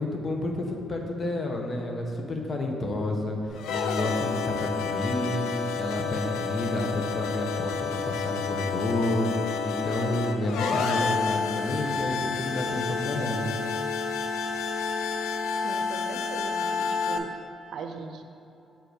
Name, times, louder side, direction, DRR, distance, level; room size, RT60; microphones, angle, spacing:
voice 1, 0.0-9.3 9.6-13.4, left 1 dB, 40° left, 2 dB, 1.1 m, -30 dB
sound 1, 3.5-17.2, left 5 dB, 85° left, 0.5 m, -30 dB
voice 2, 15.6-17.3 17.7-18.2, right 5 dB, 70° right, 6 dB, 0.6 m, -39 dB
7.5 x 5.1 x 5.1 m, 2.8 s
cardioid pair, 90°, 0 cm